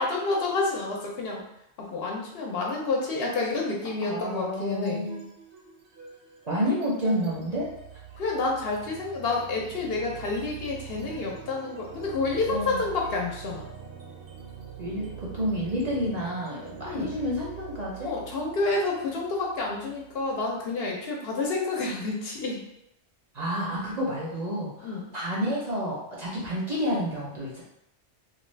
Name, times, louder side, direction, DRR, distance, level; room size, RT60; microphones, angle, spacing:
voice 1, 0.0-1.4 1.8-5.1 8.2-13.7 16.8-17.2 18.0-22.6 24.8-25.1, left 3 dB, 65° left, -2 dB, 0.8 m, -29 dB
sound 1, 3.4-3.8 4.2-20.8, right 8 dB, 70° right, 1.0 m, -44 dB
voice 2, 4.0-5.2 6.5-7.7 12.5-12.8 14.8-18.1 23.3-27.6, equal, 45° right, -5 dB, 0.6 m, -30 dB
2.4 x 2.3 x 3.2 m, 0.81 s
omnidirectional pair, 1.2 m